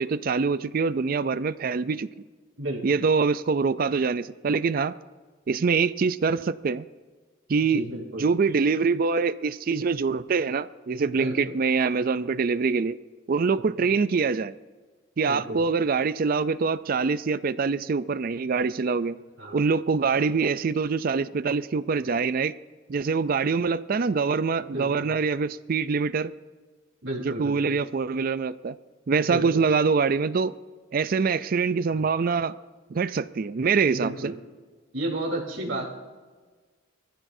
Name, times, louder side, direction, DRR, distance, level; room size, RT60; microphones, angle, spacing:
voice 1, 0.0-2.1 2.8-4.9 5.5-6.9 7.5-7.8 8.1-13.0 13.3-14.5 15.2-19.2 19.5-22.5 22.9-26.3 27.2-28.8 29.1-30.5 30.9-32.6 32.9-34.3, right 5 dB, 45° right, 0.4 m, -24 dB
voice 2, 2.6-3.0 7.7-8.3 11.2-11.3 15.3-15.6 19.4-19.6 24.6-25.1 27.0-27.8 29.3-29.6 31.9-32.0 33.9-34.3 34.9-35.9, right 1 dB, 80° right, 3.8 m, -32 dB
23.5 x 14.5 x 2.7 m
head